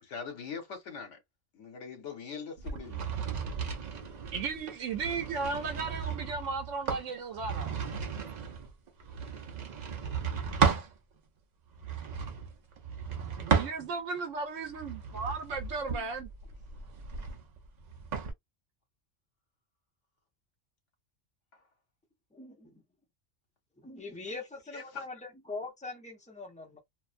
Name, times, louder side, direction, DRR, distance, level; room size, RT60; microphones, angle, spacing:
voice 1, 0.0-1.2 1.5-3.1 24.3-25.1, left 6 dB, 75° left, 1.2 m, -42 dB
sound 1, 2.6-10.9 11.7-14.2 14.7-18.3, right 6 dB, 55° right, 0.5 m, -34 dB
voice 2, 4.3-7.8 13.4-16.3, right 4 dB, 85° right, 0.9 m, -35 dB
voice 3, 22.3-22.8 23.8-26.8, left 3 dB, 10° left, 0.4 m, -42 dB
2.4 x 2.1 x 2.4 m
omnidirectional pair, 1.3 m